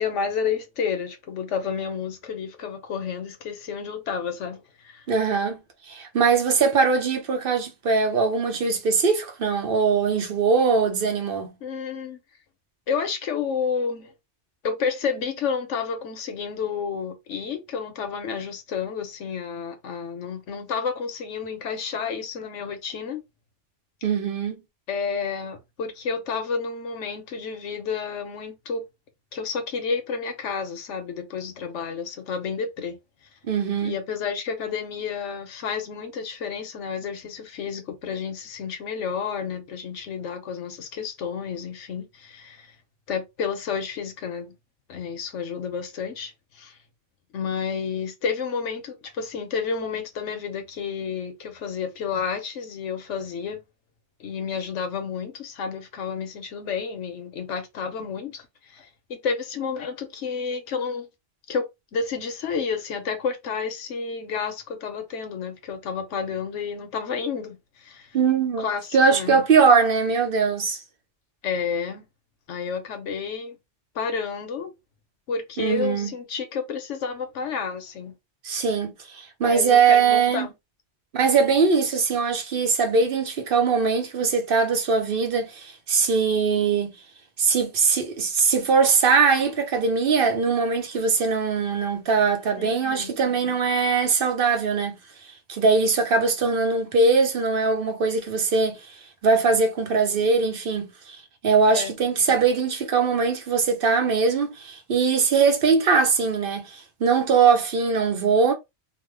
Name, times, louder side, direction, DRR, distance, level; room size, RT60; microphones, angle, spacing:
voice 1, 0.0-5.1 11.6-12.2 12.9-14.1 14.6-23.2 24.9-28.8 29.3-33.0 33.8-42.7 43.1-44.5 44.9-46.8 47.3-53.6 54.2-58.9 59.2-61.1 61.5-68.2 68.6-69.4 71.4-72.0 72.5-73.6 73.9-74.7 75.3-78.1 79.4-80.5 92.6-93.2 101.7-102.0, left 6 dB, 90° left, 1.1 m, -30 dB
voice 2, 5.1-5.6 5.9-11.5 24.0-24.6 33.5-34.0 68.1-70.8 75.6-76.1 78.4-80.5 81.1-86.9 87.4-94.9 95.5-98.8 99.2-101.2 101.4-108.5, right 5 dB, 55° right, 0.8 m, -21 dB
3.0 x 2.1 x 3.2 m
omnidirectional pair, 1.2 m